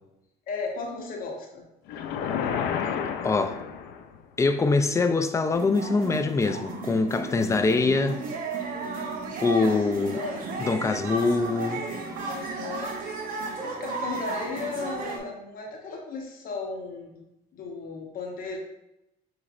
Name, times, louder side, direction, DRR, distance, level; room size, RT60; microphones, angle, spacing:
voice 1, 0.5-1.6 7.0-7.4 9.5-9.7 10.1-10.5 12.3-13.0 13.6-17.2 17.5-18.6, left 4 dB, 55° left, 0.9 m, -35 dB
sound 1, 1.9-4.2, left 7 dB, 90° left, 0.4 m, -30 dB
voice 2, 3.2-3.6 4.4-8.2 9.4-10.2 10.6-11.9, left 3 dB, 20° left, 0.3 m, -24 dB
sound 2, 5.5-15.2, right 3 dB, 55° right, 0.8 m, -34 dB
6.0 x 3.1 x 2.4 m
cardioid pair, 110°, 17 cm